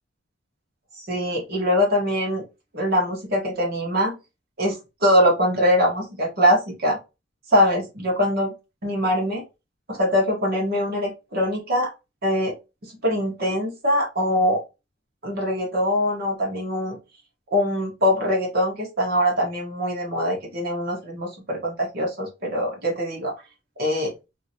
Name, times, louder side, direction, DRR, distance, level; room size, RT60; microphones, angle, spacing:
voice 1, 0.9-2.4 2.7-4.2 4.6-7.0 7.5-8.5 8.8-9.4 9.9-11.9 12.2-12.5 12.8-14.6 15.2-17.0 17.5-23.3 23.8-24.1, equal, 50° right, -1 dB, 1.1 m, -23 dB
2.8 x 2.7 x 2.8 m, 0.26 s
head